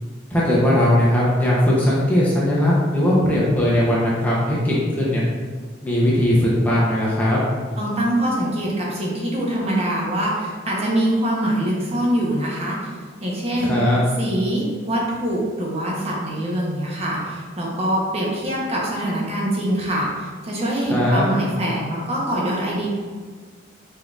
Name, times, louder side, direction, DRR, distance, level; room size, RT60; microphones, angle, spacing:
voice 1, 0.3-5.2 5.8-7.4 13.6-14.0 20.9-21.3, left 1 dB, 10° left, -7 dB, 0.7 m, -19 dB
voice 2, 7.8-12.8 13.2-13.8 14.2-22.9, right 1 dB, 35° right, -4 dB, 0.9 m, -24 dB
5.2 x 3.7 x 2.4 m, 1.5 s
head